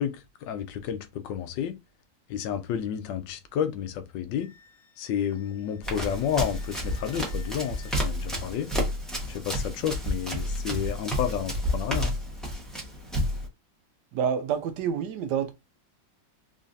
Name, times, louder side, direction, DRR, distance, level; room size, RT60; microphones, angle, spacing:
voice 1, 0.0-1.8 2.3-4.5 5.0-8.7 9.3-12.2, left 9 dB, 80° left, 1.3 m, -31 dB
Wind instrument woodwind instrument, 4.4-7.9, left 8 dB, 50° left, 0.8 m, -55 dB
Run, 5.8-13.5, equal, ahead, 0.9 m, -30 dB
voice 2, 14.1-15.5, right 7 dB, 75° right, 1.1 m, -28 dB
3.8 x 3.2 x 2.5 m
omnidirectional pair, 2.0 m